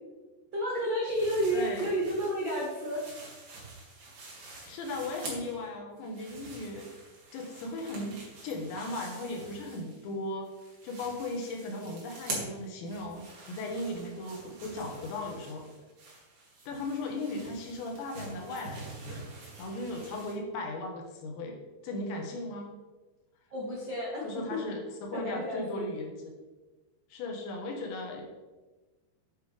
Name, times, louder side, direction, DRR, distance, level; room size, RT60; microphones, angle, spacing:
voice 1, 0.5-3.0 23.5-24.6 25.1-25.9, equal, 75° right, -5 dB, 1.0 m, -31 dB
sound 1, 1.1-5.7 6.0-10.2 10.4-20.3, right 2 dB, 50° right, 3.6 m, -46 dB
voice 2, 1.5-1.9 4.7-6.9 7.3-10.5 10.8-15.7 16.7-19.2 19.6-21.6 21.8-22.7 24.2-26.1 27.1-28.2, left 2 dB, 75° left, 2 dB, 3.7 m, -37 dB
9.8 x 8.9 x 3.5 m, 1.2 s
omnidirectional pair, 5.2 m